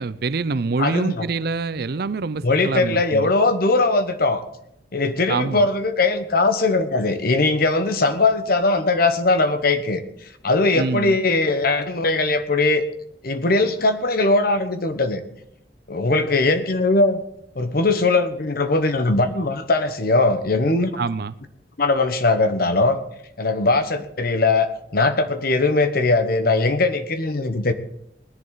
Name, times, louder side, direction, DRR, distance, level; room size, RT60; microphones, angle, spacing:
voice 1, 0.0-3.3 5.3-5.7 10.7-11.2 21.0-21.3, right 4 dB, 60° right, 16 dB, 0.6 m, -25 dB
voice 2, 0.8-1.2 2.4-4.4 4.9-10.0 10.4-12.8 13.2-15.2 15.9-17.2 17.5-20.9 21.8-23.0 23.4-27.7, left 3 dB, 60° left, 9 dB, 1.2 m, -20 dB
19.5 x 11.0 x 4.0 m, 0.75 s
head